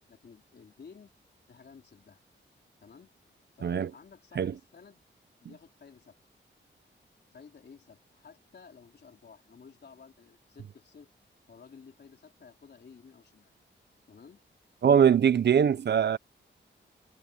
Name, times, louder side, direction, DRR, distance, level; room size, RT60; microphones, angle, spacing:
voice 1, 0.1-1.1 1.5-2.2 2.8-3.1 3.5-5.0 5.4-6.2 7.3-11.1 11.5-13.5 14.1-14.4, left 5 dB, 55° left, 3.8 m, -53 dB
voice 2, 14.8-16.2, right 8 dB, 60° right, 0.6 m, -22 dB
wide cardioid pair, 150°, 20 cm